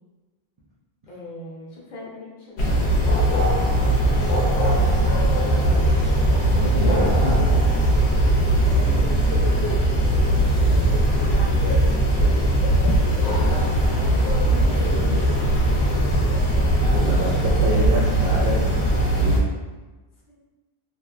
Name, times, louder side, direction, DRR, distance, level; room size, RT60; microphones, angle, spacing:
voice 1, 1.0-6.0 8.6-9.2 9.7-11.9 13.0-15.8 16.8-17.1 17.7-18.0 20.3-20.4, left 3 dB, 50° left, -6 dB, 0.8 m, -40 dB
sound 1, 2.6-19.4, right 1 dB, 80° left, 0.8 m, -19 dB
voice 2, 6.5-7.5 16.9-19.5, right 1 dB, 55° right, -6 dB, 0.4 m, -27 dB
2.9 x 2.1 x 2.3 m, 1.2 s
omnidirectional pair, 1.1 m